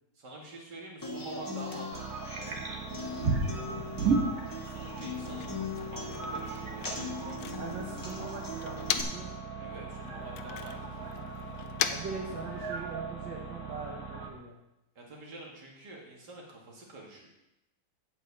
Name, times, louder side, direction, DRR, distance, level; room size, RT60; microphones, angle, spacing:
voice 1, 0.1-2.6 4.4-5.5 5.9-7.4 9.6-11.2 15.0-17.3, right 2 dB, 65° right, -2 dB, 2.7 m, -47 dB
Human voice / Acoustic guitar, 1.0-9.0, left 3 dB, 15° left, 1.1 m, -41 dB
sound 1, 1.9-14.3, right 4 dB, 50° right, 1.8 m, -36 dB
voice 2, 3.5-3.8 7.6-9.3 11.9-14.6, right 4 dB, 85° right, -3 dB, 2.1 m, -41 dB
Motor vehicle (road), 4.9-9.4 9.7-13.0, left 8 dB, 65° left, 1.1 m, -39 dB
8.5 x 5.8 x 8.1 m, 0.89 s
omnidirectional pair, 2.0 m